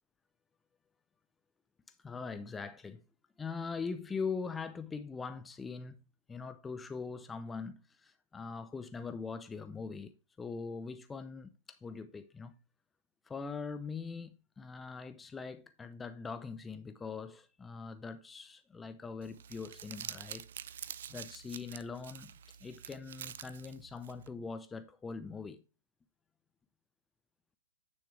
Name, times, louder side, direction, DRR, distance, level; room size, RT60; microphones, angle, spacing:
voice 1, 1.9-3.0 3.4-6.0 6.3-12.5 13.3-20.5 21.1-22.3 22.6-25.6, left 5 dB, 10° left, 0.5 m, -42 dB
Crumpling crinkling, 19.2-24.3, right 9 dB, 60° right, 0.6 m, -47 dB
9.8 x 6.4 x 3.3 m
figure-of-eight pair, 115°, 0 cm